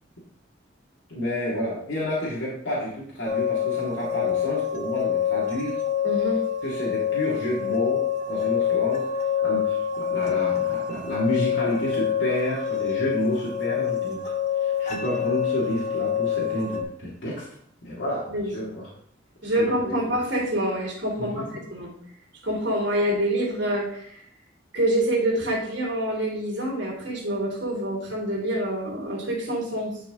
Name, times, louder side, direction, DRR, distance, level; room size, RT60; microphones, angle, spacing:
voice 1, 1.1-5.8 6.6-9.1 9.4-17.4 17.8-18.9 19.4-20.0 21.2-21.6, equal, 75° left, -7 dB, 2.1 m, -30 dB
sound 1, 3.2-16.8, left 9 dB, 40° left, 0.9 m, -26 dB
voice 2, 6.0-6.4 18.3-18.5 19.4-21.9 22.4-24.2 24.7-30.0, right 1 dB, 70° right, -2 dB, 3.0 m, -26 dB
10.5 x 4.9 x 3.7 m, 0.69 s
head